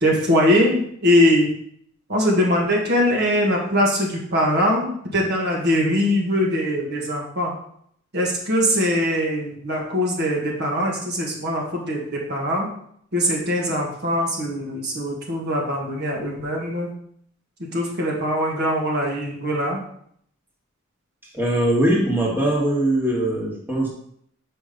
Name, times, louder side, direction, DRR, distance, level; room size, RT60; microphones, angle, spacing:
voice 1, 0.0-1.5 2.1-7.5 8.1-12.7 13.1-16.9 17.7-19.8, equal, 55° right, -2 dB, 1.6 m, -22 dB
voice 2, 21.3-23.9, right 1 dB, 10° right, -4 dB, 1.7 m, -21 dB
5.8 x 5.1 x 5.1 m, 0.67 s
head